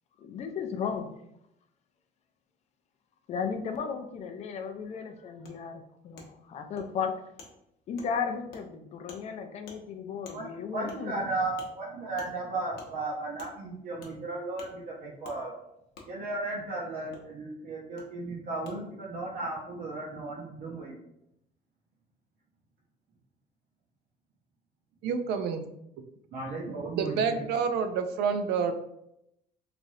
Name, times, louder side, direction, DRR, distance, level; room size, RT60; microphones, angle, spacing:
voice 1, 0.2-1.1 3.3-7.1 7.9-11.3, left 6 dB, 40° left, 6 dB, 0.4 m, -35 dB
Wood, 5.4-5.5 6.2-6.3 6.8-6.9 7.4-7.5 8.0-8.1 8.5-8.6 9.1-9.2 9.7-9.8 10.2-10.4 10.9-11.0 11.6-11.7 12.2-12.3 12.8-12.9 13.4-13.5 14.0-14.1 14.6-14.7 15.2-15.4 15.9-16.1 17.1-17.2 18.0-18.1 18.6-18.7, left 4 dB, 70° left, 0.8 m, -48 dB
voice 2, 10.3-15.5 16.1-20.9 26.3-27.4, right 2 dB, 60° right, -4 dB, 0.8 m, -35 dB
voice 3, 25.0-25.6 26.9-28.7, right 6 dB, 75° right, 8 dB, 0.4 m, -28 dB
3.1 x 2.5 x 2.6 m, 0.80 s
cardioid pair, 145°, 17 cm